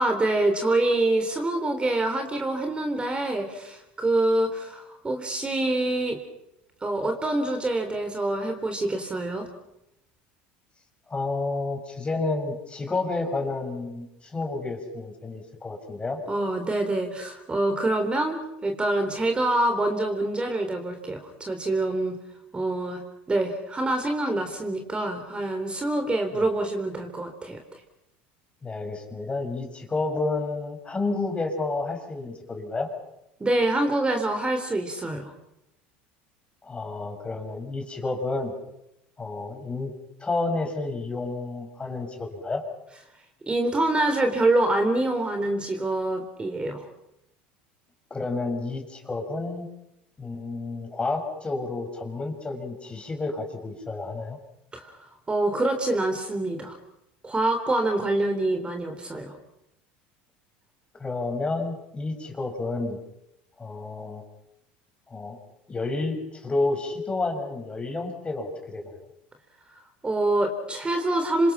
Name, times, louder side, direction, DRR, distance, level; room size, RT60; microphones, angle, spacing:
voice 1, 0.0-6.2 6.8-9.5 16.3-22.2 22.5-27.6 33.4-35.3 43.5-46.9 54.7-55.0 55.3-56.8 57.2-59.4 70.0-71.5, right 2 dB, 20° right, 6 dB, 3.9 m, -26 dB
voice 2, 11.1-16.2 26.3-26.5 28.6-32.9 36.6-38.5 39.2-39.9 40.2-42.6 48.1-49.7 50.2-54.4 61.0-63.0 63.6-64.2 65.1-65.4 65.7-68.9, left 3 dB, 20° left, 4 dB, 6.4 m, -30 dB
27.5 x 25.5 x 5.8 m, 0.85 s
hypercardioid pair, 85°, 5 cm